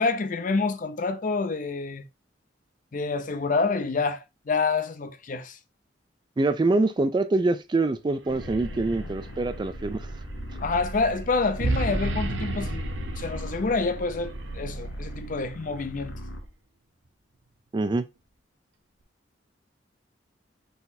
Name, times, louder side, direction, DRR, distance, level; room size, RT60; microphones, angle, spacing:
voice 1, 0.0-2.0 2.9-5.6 10.6-16.1, left 4 dB, 45° left, 0.5 m, -27 dB
voice 2, 6.4-10.0 17.7-18.0, right 2 dB, 25° right, 0.3 m, -25 dB
sound 1, 8.2-16.3, right 1 dB, 80° right, 0.7 m, -34 dB
sound 2, 8.3-16.5, equal, 70° left, 0.8 m, -39 dB
4.2 x 4.0 x 2.6 m
head